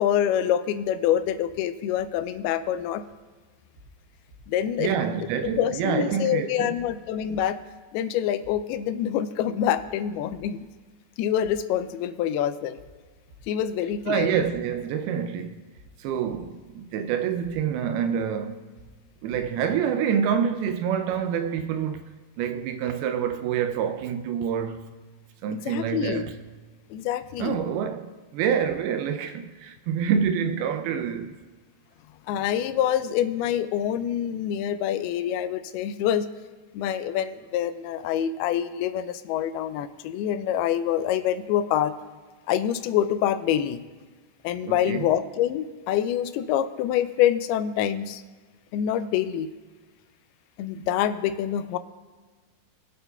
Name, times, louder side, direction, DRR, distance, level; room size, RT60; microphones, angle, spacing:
voice 1, 0.0-3.0 4.5-4.9 5.6-7.6 7.9-10.7 11.2-12.8 13.5-14.3 25.5-26.2 26.9-27.6 32.3-36.3 36.7-41.9 42.5-43.8 44.4-48.2 48.7-49.5 50.6-51.8, left 10 dB, 85° left, 2.4 m, -26 dB
sound 1, 3.0-3.2 3.5-4.7 5.0-5.1 5.4-5.6 6.0-6.2 6.5-6.9 7.3-7.7 8.0-8.1 8.4-8.6 9.0-9.2 9.5-10.7 11.0-11.1 11.4-11.6 12.0-12.2 12.5-12.9 13.3-14.1 14.4-14.6 15.0-15.2 15.5-16.7 17.0-17.1 17.4-17.6 18.0-18.2 18.5-18.9 19.3-19.7 20.0-20.1, equal, 20° left, 3.8 m, -52 dB
voice 2, 4.8-6.8 14.1-15.7 16.0-18.7 19.2-22.0 22.4-25.0 25.4-26.4 27.4-31.4 44.6-45.1, right 7 dB, 85° right, 2.4 m, -27 dB
22.0 x 8.3 x 2.3 m
omnidirectional pair, 4.6 m